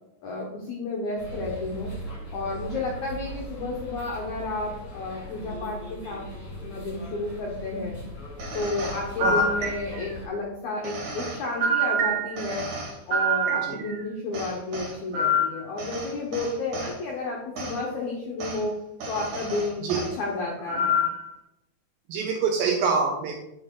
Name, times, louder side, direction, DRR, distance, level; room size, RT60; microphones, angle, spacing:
voice 1, 0.2-1.9 2.3-6.2 6.6-8.0 8.5-12.7 13.1-18.7 19.1-21.0, left 2 dB, 75° left, -2 dB, 1.7 m, -31 dB
sound 1, 1.2-10.3, equal, 30° left, 1.4 m, -39 dB
sound 2, 8.4-10.2 10.8-14.0 14.3-16.9 17.6-17.8 18.4-18.6 19.0-20.1 20.7-21.3, right 1 dB, 55° right, 2.8 m, -28 dB
voice 2, 22.1-23.4, right 5 dB, 80° right, 2 dB, 2.1 m, -25 dB
8.6 x 4.3 x 3.8 m, 0.88 s
omnidirectional pair, 4.7 m